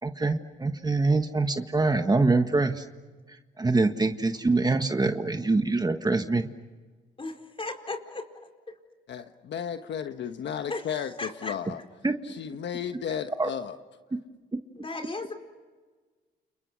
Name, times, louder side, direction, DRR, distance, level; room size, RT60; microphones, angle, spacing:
voice 1, 0.0-2.9 3.3-6.5 12.0-12.1 13.4-13.5 14.5-14.6, right 3 dB, 20° right, 6 dB, 1.6 m, -25 dB
voice 2, 7.2-8.2 10.7-10.8 11.2-11.5 14.8-15.3, left 3 dB, 25° left, 4 dB, 4.7 m, -35 dB
voice 3, 9.1-11.8 12.2-13.8, left 8 dB, 65° left, 7 dB, 1.3 m, -34 dB
30.0 x 29.0 x 6.4 m, 1.4 s
cardioid pair, 90°, 20 cm